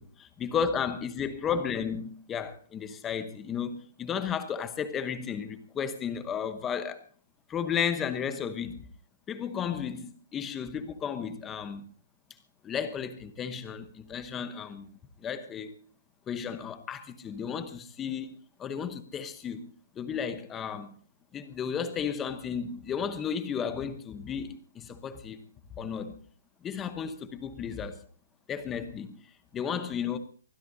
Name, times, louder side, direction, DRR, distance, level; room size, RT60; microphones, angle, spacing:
voice 1, 0.0-7.0 7.5-8.9 9.3-11.8 12.6-14.9 15.2-15.8 16.3-20.9 21.3-25.4 25.8-26.2 26.6-28.0 28.5-30.2, left 7 dB, 10° left, 0.9 m, -33 dB
24.0 x 15.5 x 2.7 m
hypercardioid pair, 175°, 0 cm